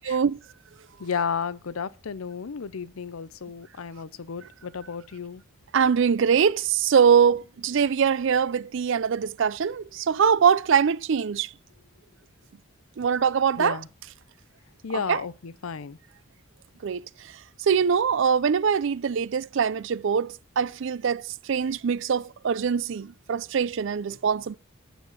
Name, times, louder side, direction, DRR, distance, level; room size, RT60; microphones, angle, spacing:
voice 1, 0.1-0.4 5.7-11.5 13.0-13.8 15.1-15.2 16.8-17.0 17.6-24.5, right 7 dB, 60° right, 0.4 m, -23 dB
voice 2, 1.0-5.4 13.6-13.9 14.8-16.0, left 6 dB, 80° left, 0.6 m, -33 dB
9.1 x 6.6 x 7.1 m
head